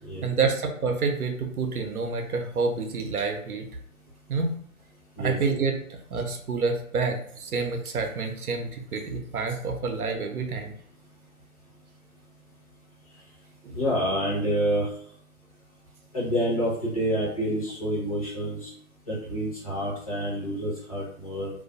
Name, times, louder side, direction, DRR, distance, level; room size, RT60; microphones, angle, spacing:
voice 1, 0.2-3.7 4.3-4.5 5.2-10.7 13.6-13.8, right 4 dB, 75° right, 4 dB, 0.6 m, -28 dB
voice 2, 5.2-5.6 13.7-14.9 16.1-18.7 19.1-21.5, equal, 25° left, -7 dB, 0.6 m, -28 dB
2.3 x 2.2 x 2.4 m, 0.64 s
figure-of-eight pair, 140°, 44 cm